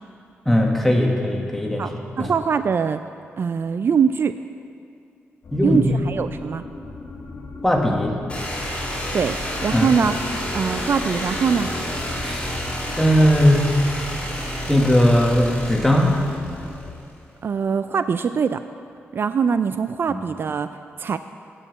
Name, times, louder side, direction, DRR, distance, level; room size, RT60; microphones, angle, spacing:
voice 1, 0.4-1.9 2.2-2.3 5.5-6.0 7.6-8.2 9.7-9.9 12.2-12.6 13.0-13.6 14.7-16.1 20.1-20.2, equal, 5° left, 0 dB, 1.5 m, -18 dB
voice 2, 1.8-3.0 3.4-4.4 5.6-6.6 9.1-10.1 10.5-11.7 17.4-18.6 19.1-21.2, right 6 dB, 55° right, 11 dB, 0.3 m, -22 dB
sound 1, 5.4-16.9, left 3 dB, 60° left, 1.5 m, -38 dB
sound 2, 8.3-17.0, equal, 25° left, 3.3 m, -30 dB
10.0 x 7.1 x 8.1 m, 2.4 s
cardioid pair, 95°, 5 cm